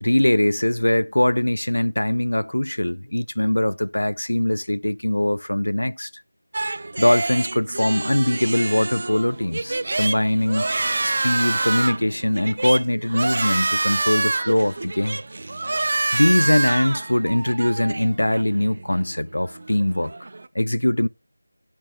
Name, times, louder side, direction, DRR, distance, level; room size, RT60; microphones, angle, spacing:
voice 1, 0.0-6.1 7.0-10.7 11.0-15.2 16.1-20.1 20.5-21.1, left 1 dB, 70° left, 0.4 m, -21 dB
sound 1, 6.5-20.5, right 2 dB, 45° right, 0.4 m, -27 dB
13.5 x 8.6 x 2.3 m
figure-of-eight pair, 165°, 0 cm